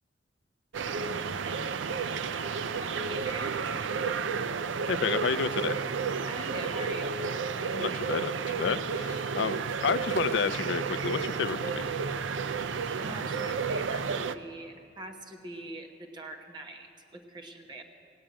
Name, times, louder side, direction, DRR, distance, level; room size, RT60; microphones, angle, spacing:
sound 1, 0.7-14.3, right 5 dB, 75° right, 0.5 m, -32 dB
voice 1, 2.8-3.6 6.2-7.2 13.0-17.8, right 2 dB, 25° right, 2 dB, 1.1 m, -43 dB
voice 2, 4.9-5.8 7.7-11.8, left 5 dB, 65° left, 14 dB, 0.4 m, -30 dB
17.5 x 8.8 x 8.9 m, 2.5 s
head